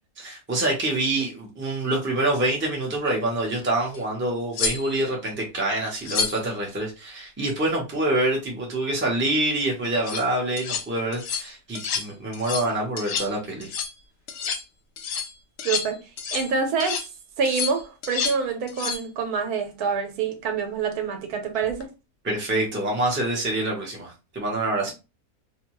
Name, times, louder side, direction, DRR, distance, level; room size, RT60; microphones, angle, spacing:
voice 1, 0.2-13.7 22.2-24.9, right 1 dB, 10° right, 0.6 m, -26 dB
sound 1, 3.9-4.0 4.5-5.1 6.0-6.5 9.9-10.2 10.6-10.9 11.1-11.5 11.8-12.1 12.3-12.7 13.0-13.4 13.6-14.0 14.3-14.6 15.0-16.5 16.8-17.1 17.5-18.4 18.7-19.1 21.6-21.8, left 6 dB, 75° left, 0.6 m, -29 dB
voice 2, 15.6-16.0 16.3-17.0 17.4-21.9 24.9-25.0, right 5 dB, 80° right, 1.2 m, -26 dB
2.7 x 2.2 x 2.9 m
omnidirectional pair, 1.6 m